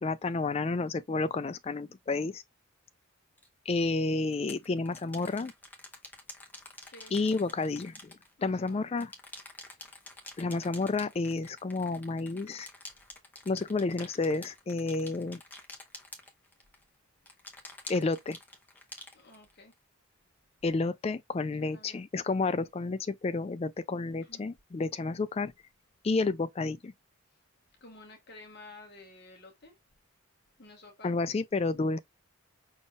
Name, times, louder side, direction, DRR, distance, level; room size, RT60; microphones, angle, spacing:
voice 1, 0.0-2.4 3.7-5.5 7.1-8.1 8.4-9.1 10.4-12.7 13.5-15.4 17.9-18.4 20.6-25.5 26.0-26.9 31.0-32.0, left 3 dB, 30° left, 0.3 m, -30 dB
sound 1, 3.4-3.5 4.3-8.7 9.0-16.8 17.3-19.7, left 2 dB, 10° left, 0.8 m, -48 dB
voice 2, 6.9-7.4 8.4-8.8 9.6-9.7 19.1-19.7 21.6-22.0 24.2-24.5 27.8-29.7 30.6-31.2, left 2 dB, 50° left, 1.0 m, -52 dB
5.3 x 3.4 x 2.3 m
head